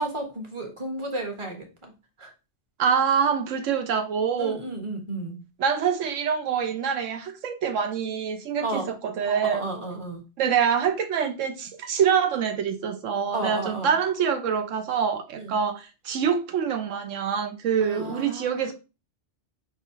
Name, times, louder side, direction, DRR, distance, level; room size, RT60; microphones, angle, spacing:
voice 1, 0.0-1.9 2.2-2.3 4.4-5.4 8.6-8.9 9.5-10.2 13.3-13.9 15.4-15.5 17.8-18.7, right 2 dB, 25° right, 1.1 m, -33 dB
voice 2, 2.8-4.6 5.6-9.7 10.4-18.7, right 7 dB, 80° right, 1.1 m, -25 dB
4.9 x 3.7 x 2.8 m
omnidirectional pair, 1.3 m